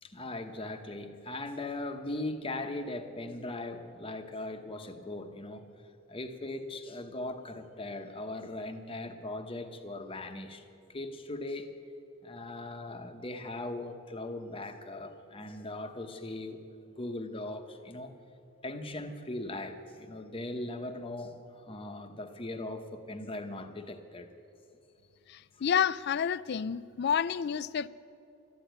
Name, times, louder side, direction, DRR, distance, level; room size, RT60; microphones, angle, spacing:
voice 1, 0.0-5.7 6.1-11.7 12.2-18.2 18.6-24.3, left 2 dB, 25° left, 7 dB, 0.9 m, -39 dB
voice 2, 25.3-27.9, left 7 dB, 50° left, 18 dB, 0.3 m, -29 dB
13.0 x 10.0 x 9.2 m, 2.9 s
head